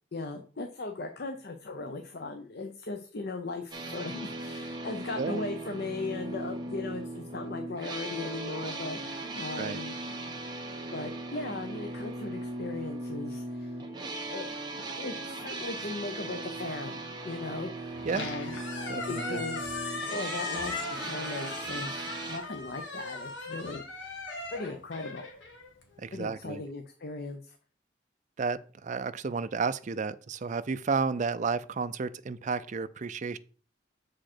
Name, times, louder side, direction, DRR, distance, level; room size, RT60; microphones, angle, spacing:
voice 1, 0.1-9.9 10.9-13.8 14.3-18.6 19.1-19.8 20.1-24.2 24.5-25.2 26.1-27.6, left 3 dB, 55° left, 0.7 m, -38 dB
sound 1, 3.7-22.4, right 2 dB, 25° right, 1.2 m, -38 dB
Squeak, 17.9-26.2, left 3 dB, 85° left, 1.9 m, -38 dB
voice 2, 18.9-19.4 26.0-26.6 28.4-33.4, right 5 dB, 40° right, 0.4 m, -32 dB
7.4 x 5.0 x 4.4 m
head